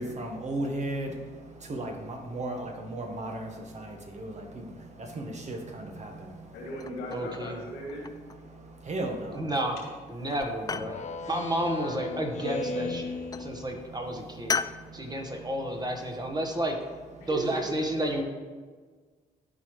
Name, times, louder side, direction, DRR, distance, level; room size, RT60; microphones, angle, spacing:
voice 1, 0.0-6.5 8.5-9.5 10.9-11.3 13.0-15.8 17.2-17.3, right 1 dB, 45° right, 3 dB, 1.3 m, -37 dB
voice 2, 6.5-8.1 9.8-9.9 17.2-18.2, equal, 90° left, -2 dB, 2.2 m, -37 dB
sound 1, 6.8-7.5 7.9-8.5 9.3-9.8 10.1-11.0 12.4-12.9 13.3-13.5 14.5-14.8, left 5 dB, 25° left, 0.3 m, -35 dB
voice 3, 7.1-7.6 9.3-9.8 10.1-11.0 11.3-14.6 14.9-16.8 17.3-18.2, right 1 dB, 25° right, 3 dB, 1.4 m, -31 dB
Speech synthesizer, 10.7-14.2, left 3 dB, 45° left, 0.8 m, -36 dB
12.5 x 4.5 x 3.2 m, 1.5 s
supercardioid pair, 65°, 17 cm